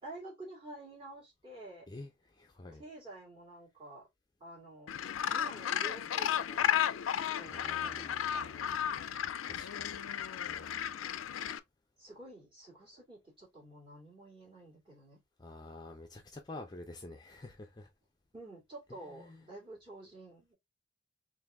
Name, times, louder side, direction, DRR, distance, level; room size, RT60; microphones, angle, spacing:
voice 1, 0.0-1.9 2.7-4.1 4.4-4.9 5.3-6.7 7.4-9.1 12.0-15.2 18.3-20.5, right 2 dB, 25° right, 2.1 m, -50 dB
voice 2, 1.9-2.8 7.5-8.7 9.4-10.0 10.4-10.9 15.4-17.9 19.2-19.4, left 2 dB, 20° left, 0.5 m, -49 dB
Gull seagull, 4.9-11.6, left 9 dB, 90° left, 0.4 m, -34 dB
3.8 x 2.6 x 3.3 m
head